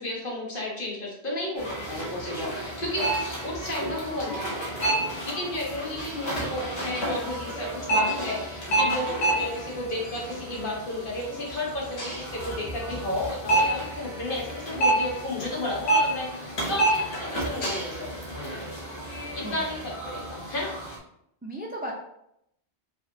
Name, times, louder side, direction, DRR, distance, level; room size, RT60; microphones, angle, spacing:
voice 1, 0.0-4.8 5.2-18.3 19.3-20.8, left 1 dB, 55° left, -3 dB, 1.4 m, -33 dB
sound 1, 1.6-21.0, right 1 dB, 75° left, 1.5 m, -30 dB
voice 2, 4.1-4.4 19.4-19.9 21.4-21.9, right 1 dB, 15° right, 0 dB, 0.4 m, -37 dB
5.1 x 3.3 x 2.7 m, 0.77 s
omnidirectional pair, 1.1 m